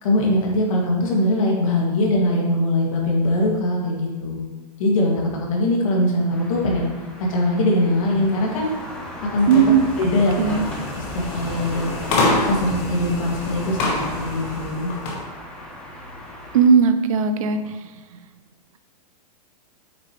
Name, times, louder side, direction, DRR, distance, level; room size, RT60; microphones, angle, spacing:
voice 1, 0.0-4.5 4.8-6.9 7.2-8.7 9.3-9.5 10.0-10.7 11.3-11.9 12.4-14.9, left 1 dB, 55° left, -2 dB, 2.1 m, -21 dB
sound 1, 6.3-16.6, left 1 dB, 5° left, 0.7 m, -36 dB
Computer Mouse, 9.4-15.2, left 2 dB, 30° left, 1.2 m, -27 dB
voice 2, 9.5-9.9 10.4-10.7 16.5-17.8, right 6 dB, 55° right, 9 dB, 0.7 m, -17 dB
8.5 x 6.3 x 3.1 m, 1.3 s
supercardioid pair, 170°, 21 cm